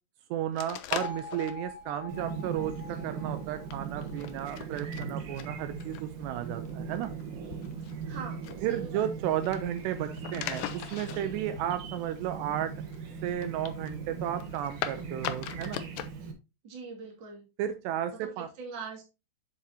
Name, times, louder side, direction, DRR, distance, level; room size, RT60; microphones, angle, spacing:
voice 1, 0.3-7.1 8.6-12.7 13.2-15.8 17.6-18.5, right 11 dB, 80° right, 9 dB, 2.7 m, -33 dB
sound 1, 0.5-16.1, left 11 dB, 90° left, 2.0 m, -42 dB
Bell, 1.0-5.1, left 3 dB, 70° left, 2.5 m, -45 dB
Chirp tweet, 2.1-16.3, right 6 dB, 60° right, 2.3 m, -39 dB
voice 2, 8.0-9.1 16.6-17.5 18.2-19.0, right 5 dB, 35° right, 0 dB, 2.4 m, -42 dB
8.4 x 7.4 x 2.8 m, 0.27 s
omnidirectional pair, 5.0 m